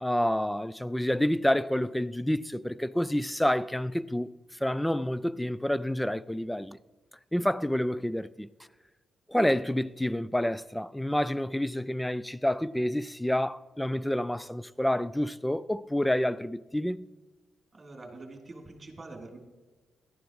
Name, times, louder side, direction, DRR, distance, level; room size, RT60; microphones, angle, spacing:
voice 1, 0.0-4.3 4.6-6.8 7.3-8.5 9.3-17.1, left 1 dB, 5° left, 0.4 m, -28 dB
voice 2, 17.7-19.4, right 2 dB, 30° right, 3.5 m, -45 dB
17.5 x 12.0 x 3.2 m
cardioid pair, 70°, 0 cm